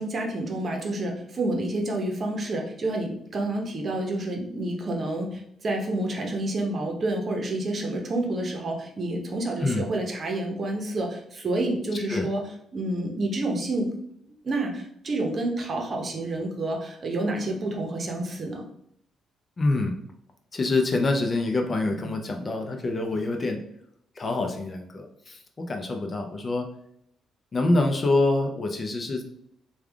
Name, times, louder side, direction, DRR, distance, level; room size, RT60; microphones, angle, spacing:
voice 1, 0.0-12.5 12.7-14.0 14.4-18.6, right 2 dB, 45° right, 1 dB, 0.8 m, -29 dB
voice 2, 19.6-19.9 20.5-23.6 24.2-26.7 27.5-29.2, left 2 dB, 35° left, 3 dB, 0.5 m, -26 dB
3.3 x 2.3 x 3.4 m, 0.70 s
cardioid pair, 90°, 0 cm